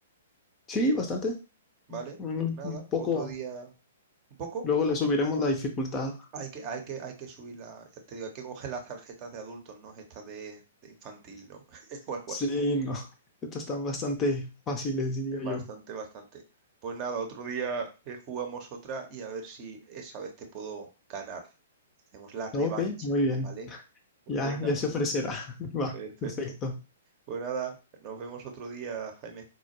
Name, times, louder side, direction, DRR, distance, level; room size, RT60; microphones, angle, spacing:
voice 1, 0.7-1.3 1.9-3.3 4.6-6.2 12.3-13.1 13.5-15.6 22.5-23.8 24.3-26.0 26.2-26.7, left 2 dB, 20° left, 4 dB, 0.6 m, -29 dB
voice 2, 1.9-3.7 4.4-4.6 6.3-12.5 14.9-15.0 15.3-16.4 16.8-21.4 22.1-23.2 23.4-23.7 24.3-24.7 25.9-26.5 27.3-29.4, right 5 dB, 30° right, 4 dB, 0.8 m, -38 dB
4.2 x 2.1 x 2.9 m, 0.31 s
figure-of-eight pair, 115°, 0 cm